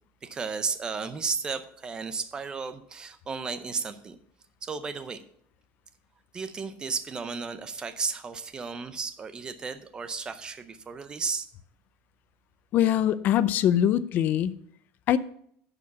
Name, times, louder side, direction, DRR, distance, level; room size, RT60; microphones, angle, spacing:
voice 1, 0.2-4.2 4.6-5.2 6.3-11.5, right 5 dB, 15° right, 12 dB, 0.6 m, -34 dB
voice 2, 12.7-14.5 15.1-15.2, left 11 dB, 35° left, 16 dB, 0.4 m, -23 dB
11.0 x 4.9 x 6.9 m, 0.66 s
cardioid pair, 175°, 5 cm